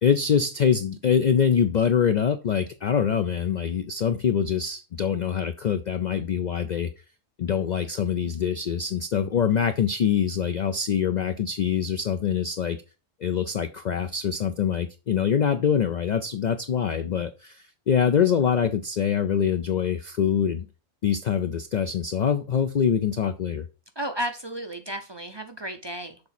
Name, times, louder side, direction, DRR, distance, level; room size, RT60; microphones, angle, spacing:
voice 1, 0.0-6.9 7.4-12.8 13.2-20.6 21.0-23.7, left 7 dB, 75° left, 10 dB, 0.4 m, -24 dB
voice 2, 24.0-26.2, right 1 dB, 40° right, 5 dB, 0.4 m, -33 dB
6.7 x 4.0 x 4.2 m, 0.31 s
omnidirectional pair, 1.3 m